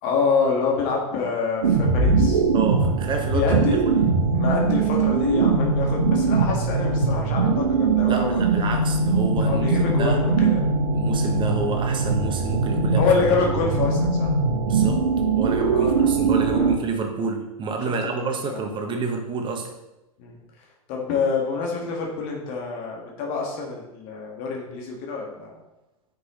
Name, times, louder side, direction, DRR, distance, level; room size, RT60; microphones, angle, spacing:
voice 1, 0.0-2.4 3.3-3.8 4.3-8.4 9.4-10.6 13.0-14.4 15.7-16.1 16.5-16.7 18.2-18.6 20.2-20.3 20.9-25.5, left 5 dB, 45° left, -1 dB, 1.8 m, -26 dB
sound 1, 1.6-16.7, right 4 dB, 75° right, 1.4 m, -21 dB
voice 2, 2.5-4.1 8.1-10.2 10.9-13.1 14.7-15.0 15.4-19.7, right 4 dB, 25° right, 3 dB, 1.3 m, -29 dB
9.7 x 5.4 x 3.1 m, 0.95 s
figure-of-eight pair, 95°, 19 cm